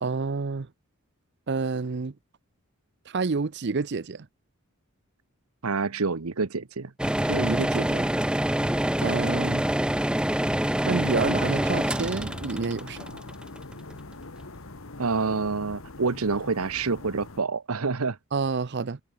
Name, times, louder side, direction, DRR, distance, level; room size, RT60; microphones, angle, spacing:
voice 1, 0.0-0.7 1.5-2.1 3.1-4.3 7.2-8.1 9.0-9.6 10.8-13.2 18.3-19.0, right 4 dB, 55° right, 0.6 m, -28 dB
voice 2, 5.6-6.9 15.0-18.2, right 4 dB, 85° right, 1.0 m, -27 dB
sound 1, 7.0-13.9, right 1 dB, 5° right, 0.5 m, -26 dB
sound 2, 11.2-17.4, left 2 dB, 70° left, 1.6 m, -42 dB
head